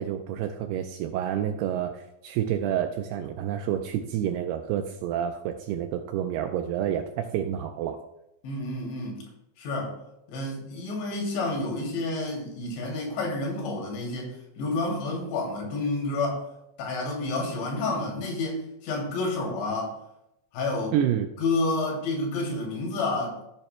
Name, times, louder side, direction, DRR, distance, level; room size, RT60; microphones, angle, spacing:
voice 1, 0.0-8.0 20.9-21.3, right 10 dB, 85° right, 5 dB, 2.4 m, -29 dB
voice 2, 8.4-9.3 9.6-9.9 10.3-16.5 16.8-20.0 20.5-21.0 21.4-23.4, left 2 dB, 80° left, -1 dB, 4.9 m, -29 dB
16.5 x 8.8 x 2.2 m, 0.82 s
omnidirectional pair, 5.1 m